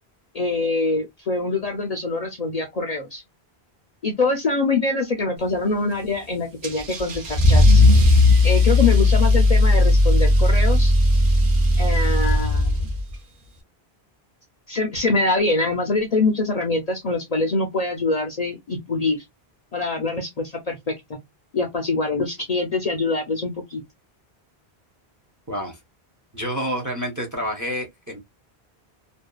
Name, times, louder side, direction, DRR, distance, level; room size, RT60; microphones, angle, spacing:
voice 1, 0.3-3.2 4.0-7.8 8.4-10.9 11.8-12.9 14.7-19.3 19.7-21.0 21.5-23.8, left 3 dB, 50° left, 0.5 m, -24 dB
Car / Engine starting / Accelerating revving vroom, 6.6-13.1, left 2 dB, 55° right, 0.9 m, -16 dB
voice 2, 25.5-25.8 26.3-28.2, equal, 20° right, 0.6 m, -28 dB
2.6 x 2.2 x 2.2 m
omnidirectional pair, 1.1 m